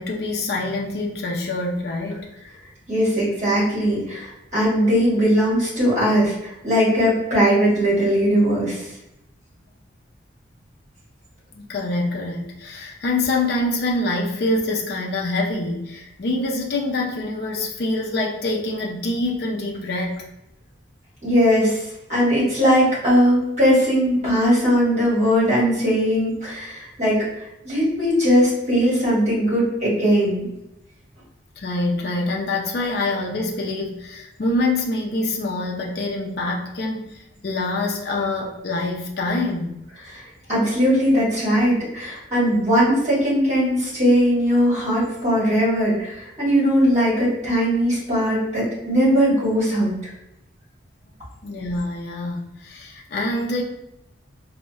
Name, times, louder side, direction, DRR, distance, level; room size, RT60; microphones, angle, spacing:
voice 1, 0.0-2.3 11.5-20.2 31.6-39.7 51.4-53.6, left 2 dB, 55° left, -1 dB, 0.4 m, -25 dB
voice 2, 2.9-8.9 21.2-21.8 22.1-30.5 40.1-40.2 40.5-50.1, equal, 35° right, -8 dB, 1.4 m, -19 dB
3.9 x 2.1 x 2.3 m, 0.85 s
head